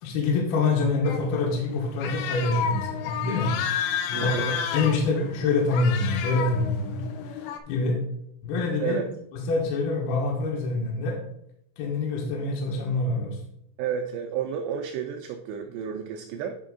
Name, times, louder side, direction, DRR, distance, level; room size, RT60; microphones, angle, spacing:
voice 1, 0.0-3.5 4.1-8.0 8.4-9.0 9.3-11.2 11.8-13.4, left 3 dB, 70° left, -2 dB, 2.8 m, -26 dB
sound 1, 1.0-7.6, left 8 dB, 85° left, 3.1 m, -31 dB
voice 2, 4.1-4.5 8.8-9.1 13.8-16.6, right 7 dB, 80° right, 4 dB, 2.5 m, -31 dB
9.7 x 5.3 x 3.7 m, 0.76 s
omnidirectional pair, 5.3 m